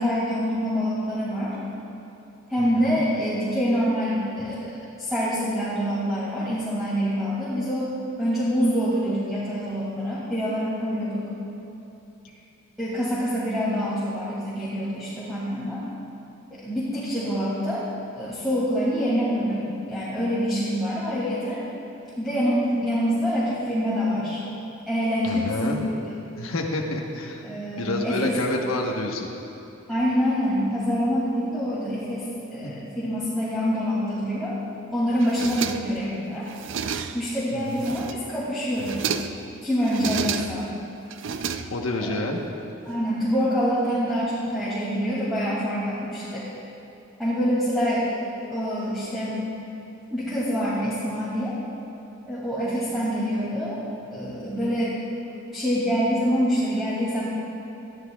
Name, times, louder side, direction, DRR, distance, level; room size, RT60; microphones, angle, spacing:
voice 1, 0.0-1.6 2.5-4.6 5.0-7.9 8.2-11.3 12.8-15.8 16.5-17.9 18.1-21.6 22.2-24.4 24.9-25.9 27.4-28.4 29.9-34.5 34.9-36.5 37.1-39.1 39.6-40.7 42.0-42.2 42.9-46.4 47.2-48.1 48.5-49.4 50.1-51.5 52.3-53.8 54.1-55.0 55.5-57.2, equal, ahead, -11 dB, 2.4 m, -26 dB
voice 2, 2.6-3.0 25.2-25.8 26.4-27.4 27.8-29.3 32.6-32.7 37.5-37.9 41.7-42.4, left 2 dB, 90° left, 0 dB, 1.1 m, -29 dB
sound 1, 35.2-36.1 36.5-37.3 37.7-38.3 38.7-39.5 39.8-40.7 41.1-42.1, right 6 dB, 65° right, 0.5 m, -31 dB
19.5 x 12.5 x 2.3 m, 3.0 s
head